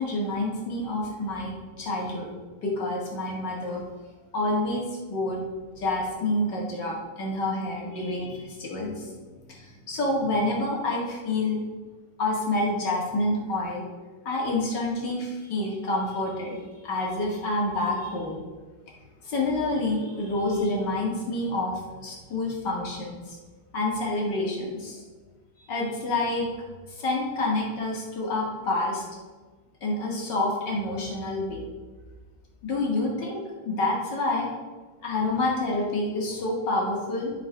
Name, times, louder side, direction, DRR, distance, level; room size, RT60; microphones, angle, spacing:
voice 1, 0.0-2.3 2.6-3.8 4.3-4.8 5.1-5.5 5.8-11.6 12.2-13.8 14.2-16.5 16.8-18.4 19.2-23.4 23.7-25.0 25.7-26.5 26.9-29.0 29.8-31.6 32.6-34.5 35.0-37.3, left 2 dB, 60° left, -3 dB, 2.5 m, -28 dB
11.5 x 4.7 x 4.7 m, 1.4 s
omnidirectional pair, 2.2 m